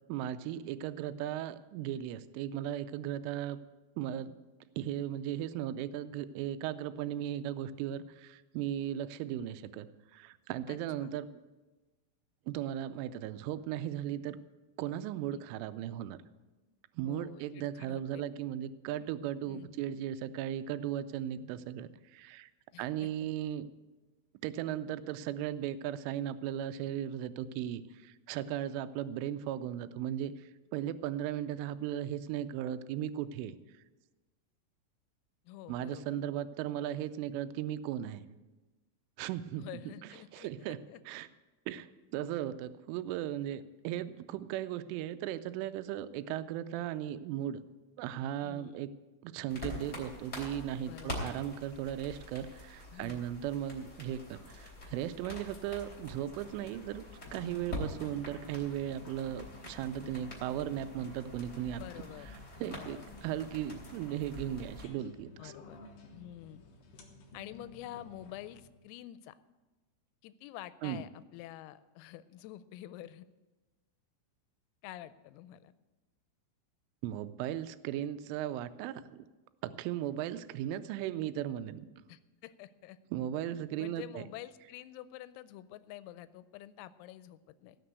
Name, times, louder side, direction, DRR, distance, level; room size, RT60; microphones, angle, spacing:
voice 1, 0.1-3.6 4.0-4.4 4.8-9.9 10.1-11.3 12.5-14.4 14.8-16.2 17.0-22.5 22.8-23.7 24.4-33.6 35.7-38.3 39.2-39.7 40.3-41.3 41.7-47.6 48.0-48.9 49.2-57.0 57.3-61.8 62.6-65.5 70.8-71.0 77.0-79.2 79.6-81.9 83.1-84.2, right 11 dB, 80° right, 12 dB, 3.0 m, -37 dB
voice 2, 10.7-11.1 15.3-15.4 17.1-18.2 19.4-19.8 22.7-23.1 35.5-36.2 39.6-41.0 46.8-46.9 48.4-48.8 50.9-51.3 52.9-53.2 57.4-57.5 61.8-62.3 62.6-63.0 65.4-65.8 66.1-66.6 67.3-69.4 70.2-73.3 74.8-75.7 82.1-83.0 83.8-87.8, left 13 dB, 90° left, 14 dB, 3.3 m, -48 dB
sound 1, 49.5-64.8, left 1 dB, 15° left, 3.2 m, -46 dB
sound 2, 56.4-68.6, left 2 dB, 65° left, 2.5 m, -53 dB
17.0 x 6.8 x 8.0 m, 1.2 s
omnidirectional pair, 5.9 m